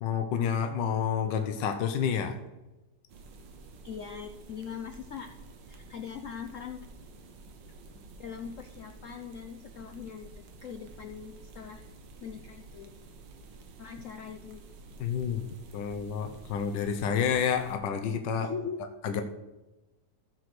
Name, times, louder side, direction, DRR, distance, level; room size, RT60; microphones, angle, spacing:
voice 1, 0.0-2.4 15.0-15.4 15.7-18.5 19.0-19.2, left 7 dB, 80° left, 7 dB, 1.5 m, -29 dB
sound 1, 3.1-17.8, right 3 dB, 85° right, 1.8 m, -50 dB
voice 2, 3.8-5.3 5.7-6.9 8.2-11.9 12.2-12.9 13.8-14.6 18.4-18.8, left 7 dB, 65° left, 7 dB, 0.8 m, -41 dB
14.0 x 4.8 x 6.0 m, 1.1 s
omnidirectional pair, 1.9 m